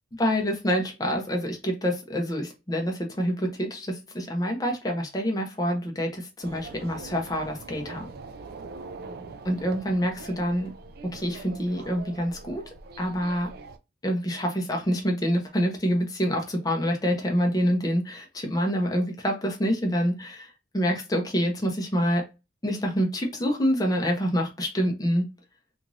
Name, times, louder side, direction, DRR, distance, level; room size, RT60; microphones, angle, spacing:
voice 1, 0.2-8.1 9.5-10.7 11.0-12.6 13.0-13.5 14.0-20.5 20.7-22.3 22.6-25.3, equal, 20° left, 0.6 m, -26 dB
sound 1, 6.4-13.8, right 3 dB, 55° right, 0.3 m, -43 dB
3.0 x 2.5 x 2.6 m
head